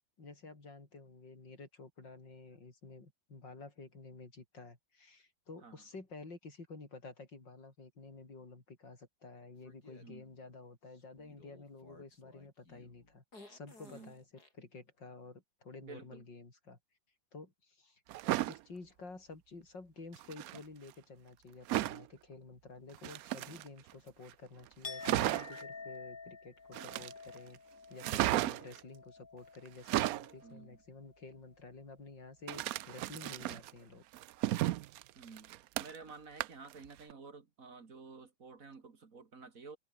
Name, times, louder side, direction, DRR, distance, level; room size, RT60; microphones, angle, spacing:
voice 1, 0.2-16.8 17.3-18.0 18.5-27.6 27.9-34.0, left 3 dB, 80° left, 5.5 m, -51 dB
sound 1, 9.6-10.1 10.9-14.5, left 2 dB, 55° left, 7.0 m, -58 dB
voice 2, 15.8-16.2 30.4-30.8 35.2-39.8, right 4 dB, 50° right, 2.4 m, -52 dB
sound 2, 18.1-18.6 20.1-20.6 21.7-22.0 22.9-23.9 24.3-24.4 24.7-24.8 25.0-25.6 26.7-27.4 28.0-28.8 29.7-30.3 32.5-33.7 34.1-36.1 36.4-36.7 37.1-37.2, right 15 dB, 70° right, 0.8 m, -34 dB
Chink clink, 24.8-30.8 31.1-31.5, left 4 dB, 30° left, 1.5 m, -50 dB
omnidirectional pair, 2.0 m